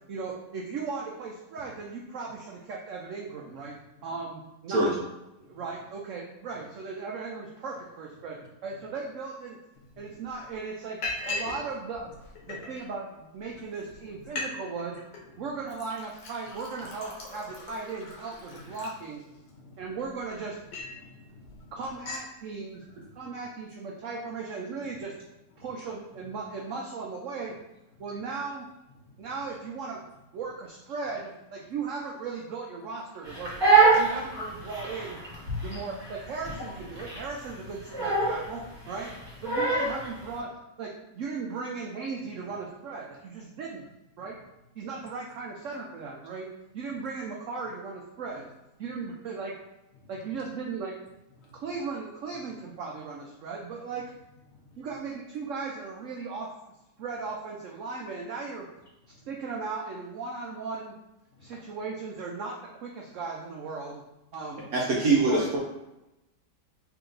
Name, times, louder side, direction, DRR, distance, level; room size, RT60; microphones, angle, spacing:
voice 1, 0.1-3.8 4.0-4.9 5.4-9.6 10.0-12.1 12.5-15.0 15.4-19.2 19.8-20.6 21.7-22.8 23.2-25.2 25.6-27.6 28.0-28.7 29.2-30.1 30.3-35.2 35.6-39.1 39.4-40.5 40.8-43.8 44.2-44.4 44.8-48.5 48.8-49.5 50.1-51.0 51.5-54.1 54.8-58.7 59.3-60.9 61.4-64.0 64.3-64.7 65.1-65.5, right 4 dB, 80° right, -1 dB, 0.6 m, -37 dB
Liquid, 9.9-10.0 10.3-10.5 11.0-11.6 11.9-12.8 13.5-13.6 13.9-14.0 14.2-14.5 14.8-15.2 15.7-19.5 20.0-21.0 21.4-21.6 21.8-22.3, left 2 dB, 75° left, 1.5 m, -38 dB
voice 2, 19.5-20.0 21.0-21.7 23.1-23.3 25.6-25.7 29.0-29.2 33.9-34.1 34.3-34.5 35.7-35.8 51.4-51.6 54.6-54.8 59.1-59.2 61.4-61.5, left 3 dB, 50° left, -3 dB, 0.9 m, -49 dB
Crying sobbing, 33.2-40.1, right 4 dB, 15° right, 1.3 m, -25 dB
voice 3, 64.7-65.6, right 3 dB, 65° right, -3 dB, 1.0 m, -23 dB
3.5 x 2.9 x 3.8 m, 0.94 s
omnidirectional pair, 1.9 m